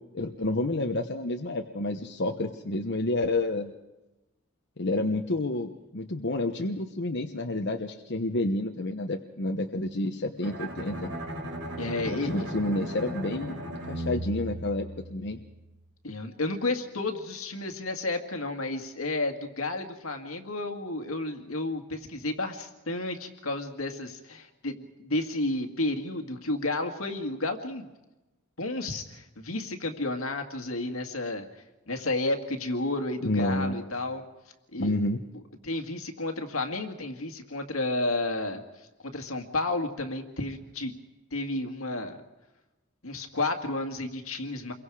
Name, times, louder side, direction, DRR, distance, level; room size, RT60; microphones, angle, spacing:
voice 1, 0.1-3.7 4.8-11.1 12.0-15.4 33.2-33.9 34.8-35.2, left 2 dB, 55° left, 3 dB, 1.1 m, -29 dB
Bowed string instrument, 10.4-15.4, right 1 dB, 90° right, 4.7 m, -37 dB
voice 2, 11.8-12.3 16.0-27.9 28.6-31.5 31.9-34.3 34.7-35.0 35.6-38.6 39.0-40.9 41.3-42.2 43.0-44.7, left 2 dB, 80° left, 5 dB, 2.1 m, -31 dB
28.0 x 23.0 x 4.9 m, 1.0 s
head